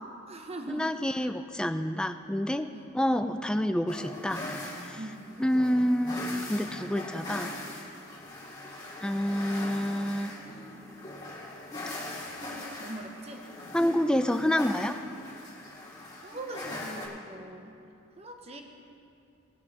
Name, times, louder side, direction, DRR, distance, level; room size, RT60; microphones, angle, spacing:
voice 1, 0.0-1.3 2.7-2.9 5.0-5.2 12.8-13.5 16.2-17.7 18.2-18.6, right 1 dB, 30° right, 4 dB, 0.8 m, -41 dB
voice 2, 0.7-2.7 2.9-4.4 4.8-5.0 5.4-7.5 9.0-10.3 13.7-15.0, equal, 5° left, 8 dB, 0.3 m, -28 dB
sound 1, 3.9-17.1, left 1 dB, 20° left, 2.0 m, -41 dB
18.5 x 6.3 x 4.8 m, 2.6 s
head